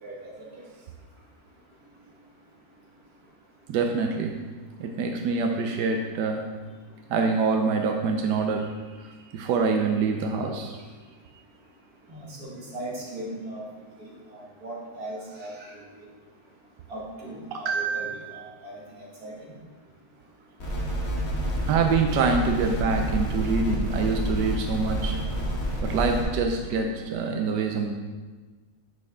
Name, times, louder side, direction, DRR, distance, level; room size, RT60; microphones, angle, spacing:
voice 1, 3.7-4.3 4.8-6.4 7.1-8.7 9.0-10.8 17.5-18.3 21.7-25.1 25.8-27.9, right 4 dB, 90° right, 3 dB, 1.3 m, -25 dB
voice 2, 12.1-13.6 14.0-15.5 16.9-18.8 19.2-19.3, right 1 dB, 65° right, -4 dB, 2.2 m, -38 dB
sound 1, 20.6-26.2, equal, 55° left, 2.6 m, -29 dB
9.0 x 6.5 x 3.6 m, 1.4 s
omnidirectional pair, 1.8 m